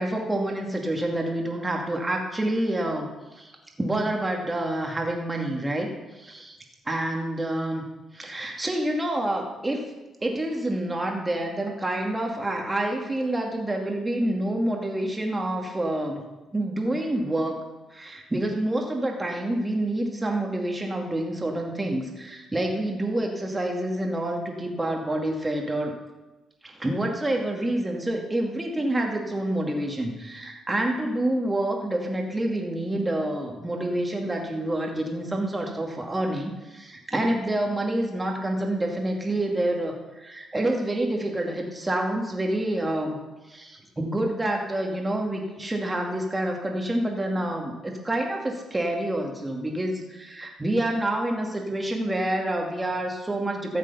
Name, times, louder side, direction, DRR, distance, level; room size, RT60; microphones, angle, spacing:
voice 1, 0.0-3.5 3.8-6.6 6.9-7.8 8.1-9.9 10.2-16.2 16.5-17.6 17.9-25.9 26.6-43.2 43.5-53.8, right 1 dB, 15° right, 1 dB, 2.4 m, -28 dB
14.0 x 7.3 x 5.7 m, 1.1 s
cardioid pair, 90°, 0 cm